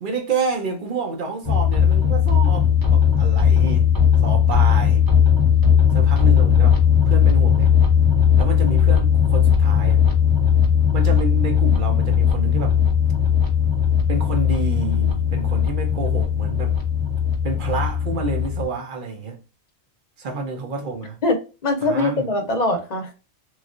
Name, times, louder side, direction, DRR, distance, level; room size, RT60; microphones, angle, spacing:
voice 1, 0.0-3.9 4.2-5.0 5.9-6.8 7.1-7.7 8.4-10.0 10.9-12.8 14.1-16.8 17.4-19.4 20.2-21.2 21.8-22.3, right 4 dB, 55° right, 0.7 m, -29 dB
sound 1, 1.4-18.6, left 8 dB, 20° right, 0.7 m, -17 dB
voice 2, 21.2-23.1, left 2 dB, 45° left, 0.7 m, -22 dB
3.1 x 2.3 x 2.4 m
omnidirectional pair, 1.1 m